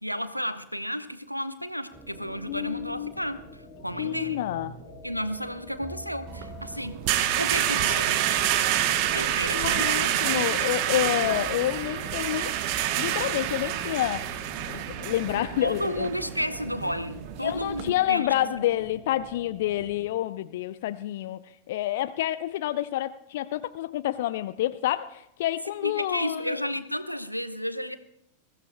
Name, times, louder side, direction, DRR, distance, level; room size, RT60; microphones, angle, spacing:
voice 1, 0.0-3.4 3.8-4.5 5.0-7.0 7.4-8.2 9.1-10.3 15.6-18.3 25.8-28.0, equal, 90° left, 0.8 m, -32 dB
sound 1, 1.9-20.1, right 2 dB, 25° right, 2.7 m, -47 dB
voice 2, 2.5-3.1 3.9-4.7 9.5-12.5 13.0-14.3 14.7-16.1 17.4-26.6, left 13 dB, 55° left, 0.4 m, -28 dB
sound 2, 6.3-17.9, right 11 dB, 45° right, 0.9 m, -28 dB
22.0 x 15.5 x 2.2 m
figure-of-eight pair, 90°, 0 cm